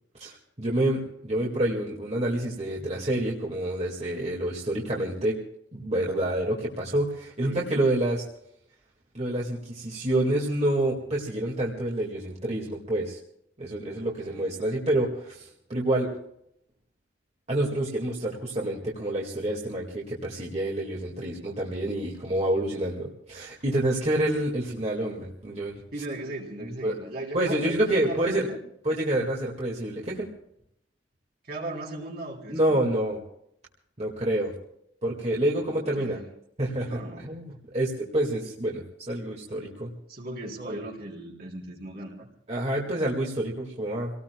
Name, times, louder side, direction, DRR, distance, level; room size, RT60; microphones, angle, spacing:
voice 1, 0.2-5.4 5.7-8.3 9.1-13.2 13.6-16.1 17.5-25.8 26.6-27.0 27.3-28.5 28.8-30.3 32.5-33.2 34.0-34.5 35.0-36.2 36.6-39.9 40.6-40.7 42.5-44.1, right 1 dB, 40° right, -3 dB, 2.2 m, -28 dB
voice 2, 7.4-7.7 14.0-14.6 25.9-28.6 31.4-32.8 35.7-36.3 36.8-37.3 40.1-42.3, right 1 dB, 60° right, -1 dB, 3.8 m, -38 dB
29.0 x 19.0 x 2.4 m, 0.73 s
head